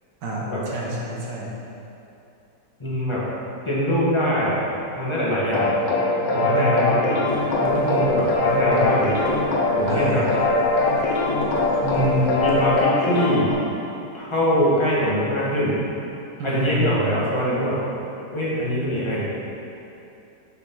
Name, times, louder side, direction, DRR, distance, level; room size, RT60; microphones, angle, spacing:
voice 1, 0.2-1.5 6.4-6.8 9.9-10.3 16.4-16.8, right 1 dB, 80° right, -3 dB, 1.7 m, -29 dB
voice 2, 2.8-3.2 3.6-4.6 4.9-5.7 6.3-7.2 7.6-9.2 9.7-10.2 11.8-13.6 14.1-15.8 16.4-17.8 18.3-19.2, equal, 15° left, -7 dB, 1.5 m, -23 dB
sound 1, 5.5-13.5, left 2 dB, 85° left, 1.7 m, -22 dB
sound 2, 7.3-12.8, left 1 dB, 70° left, 1.5 m, -33 dB
6.7 x 5.2 x 5.5 m, 2.8 s
omnidirectional pair, 1.9 m